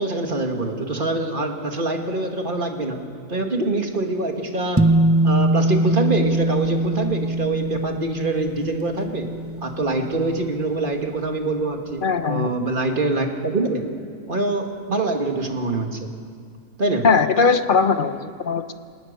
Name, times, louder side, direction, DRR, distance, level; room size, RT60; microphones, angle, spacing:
voice 1, 0.0-4.9 5.2-9.3 9.6-13.8 14.3-16.1 16.8-17.0, right 2 dB, 35° right, 4 dB, 2.0 m, -25 dB
sound 1, 4.8-11.4, right 1 dB, 15° right, 0.6 m, -23 dB
voice 2, 12.0-12.5 17.0-18.7, left 5 dB, 45° left, 10 dB, 0.8 m, -19 dB
26.0 x 19.5 x 6.7 m, 2.2 s
omnidirectional pair, 1.6 m